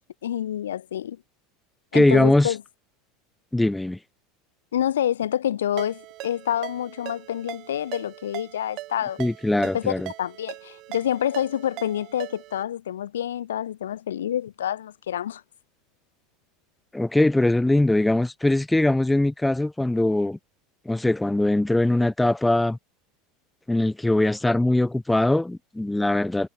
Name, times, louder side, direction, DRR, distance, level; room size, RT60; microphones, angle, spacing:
voice 1, 0.2-1.2 1.9-2.6 4.7-9.2 9.7-15.4, left 10 dB, 75° left, 0.7 m, -27 dB
voice 2, 1.9-2.5 3.5-4.0 9.2-10.1 16.9-20.4 20.9-22.8 23.7-26.5, left 1 dB, 5° left, 0.6 m, -21 dB
Ringtone, 5.8-12.6, right 18 dB, 50° right, 2.1 m, -40 dB
figure-of-eight pair, 80°, 0 cm